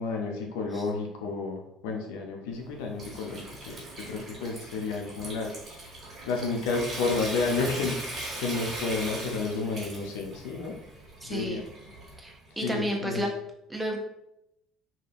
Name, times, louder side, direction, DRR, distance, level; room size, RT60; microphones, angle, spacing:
voice 1, 0.0-10.8 11.2-11.6 12.5-13.2, left 4 dB, 90° left, 1 dB, 0.4 m, -31 dB
Water tap faucet / Sink (filling or washing) / Trickle dribble, 2.5-12.5, right 1 dB, 40° right, 1.3 m, -40 dB
voice 2, 11.2-11.6 12.2-13.3 13.7-14.0, equal, 10° right, 1 dB, 0.6 m, -31 dB
2.7 x 2.3 x 2.5 m, 0.83 s
supercardioid pair, 100°, 0 cm